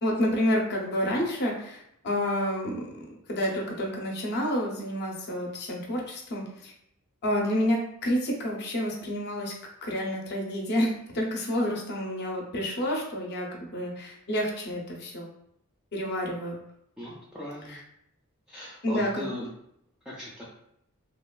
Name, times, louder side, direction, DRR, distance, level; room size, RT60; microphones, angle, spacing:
voice 1, 0.0-2.9 3.3-6.7 7.2-9.5 9.8-15.3 15.9-16.6 17.7-17.8 18.8-19.4, equal, 50° left, -1 dB, 0.6 m, -29 dB
voice 2, 17.0-17.8 18.5-19.5 20.1-20.4, left 1 dB, 5° right, -6 dB, 0.3 m, -38 dB
2.9 x 2.2 x 2.2 m, 0.75 s
head